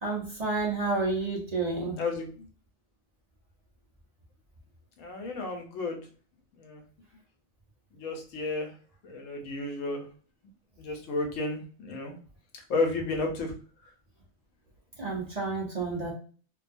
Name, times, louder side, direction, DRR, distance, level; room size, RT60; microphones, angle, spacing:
voice 1, 0.0-2.0 15.0-16.1, right 3 dB, 40° right, -3 dB, 0.7 m, -30 dB
voice 2, 2.0-2.5 5.0-6.1 6.5-6.8 7.9-8.7 9.0-10.1 10.8-12.2 12.5-13.5, left 3 dB, 85° left, 3 dB, 1.1 m, -32 dB
2.6 x 2.3 x 2.5 m, 0.42 s
omnidirectional pair, 1.3 m